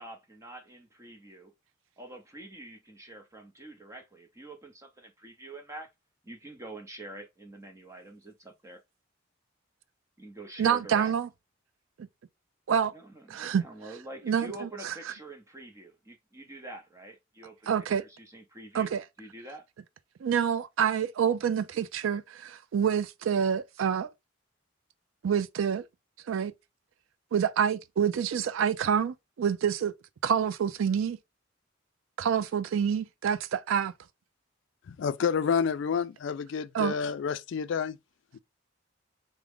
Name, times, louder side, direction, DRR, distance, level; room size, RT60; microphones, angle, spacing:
voice 1, 0.0-1.5 2.0-5.9 6.2-8.8 10.2-11.1 12.9-18.9 19.2-19.6, right 2 dB, 15° right, 0.6 m, -46 dB
voice 2, 10.6-11.3 12.7-12.9 13.3-13.6 14.3-14.5 17.7-18.0 18.7-19.0 20.2-24.1 25.2-25.8 26.3-26.5 27.3-29.9 30.2-31.2 32.2-33.9 36.7-37.0, right 8 dB, 85° right, 0.4 m, -27 dB
voice 3, 34.9-38.0, left 6 dB, 65° left, 0.3 m, -29 dB
3.5 x 2.1 x 3.5 m
head